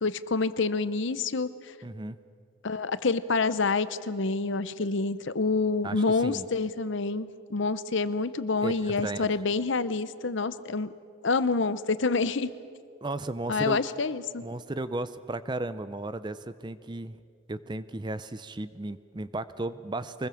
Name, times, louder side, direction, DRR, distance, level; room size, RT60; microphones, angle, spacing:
voice 1, 0.0-1.7 2.6-10.9 11.2-12.5 13.5-14.4, left 4 dB, 60° left, 14 dB, 0.7 m, -27 dB
voice 2, 1.8-2.2 5.8-6.5 8.6-9.3 13.0-13.8 14.4-17.2 17.5-20.3, right 2 dB, 20° right, 14 dB, 0.5 m, -34 dB
24.5 x 20.0 x 7.1 m, 2.2 s
head